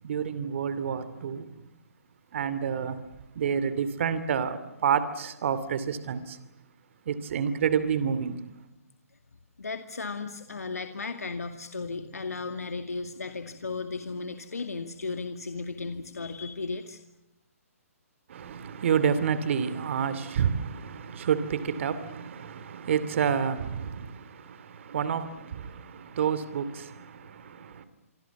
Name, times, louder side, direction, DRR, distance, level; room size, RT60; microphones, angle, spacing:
voice 1, 0.0-1.5 2.3-3.0 3.3-6.4 7.1-8.4 18.3-27.9, right 7 dB, 55° right, 2.7 m, -29 dB
voice 2, 9.6-17.0, left 4 dB, 85° left, 2.2 m, -35 dB
27.0 x 24.5 x 7.2 m
hypercardioid pair, 140°, 8 cm